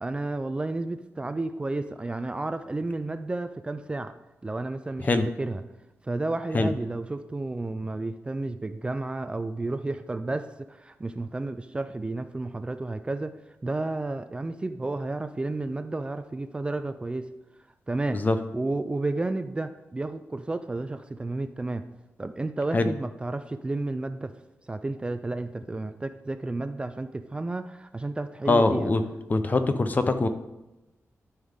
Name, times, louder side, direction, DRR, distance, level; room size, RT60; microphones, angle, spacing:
voice 1, 0.0-4.1 4.4-5.6 6.0-13.4 13.6-17.3 17.9-18.3 18.5-21.8 22.2-24.3 24.7-28.9, right 2 dB, 20° right, 10 dB, 0.4 m, -31 dB
voice 2, 28.5-29.0 29.3-30.3, left 3 dB, 35° left, 9 dB, 0.7 m, -22 dB
12.5 x 5.7 x 3.6 m, 0.99 s
wide cardioid pair, 130°, 5 cm